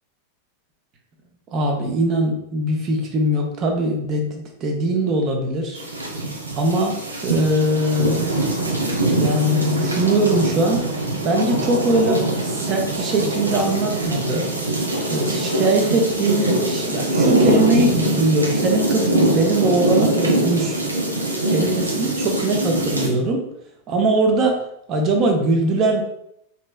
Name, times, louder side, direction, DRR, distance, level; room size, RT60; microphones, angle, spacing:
voice 1, 1.5-5.8 6.5-7.0 7.2-8.4 9.2-10.8 11.2-14.5 15.1-20.8 21.5-23.4 23.9-24.6 24.9-26.0, right 1 dB, 35° right, 2 dB, 0.6 m, -21 dB
sound 1, 5.8-23.1, right 1 dB, 80° right, 0.5 m, -22 dB
3.0 x 2.7 x 2.3 m, 0.75 s
figure-of-eight pair, 90°, 0 cm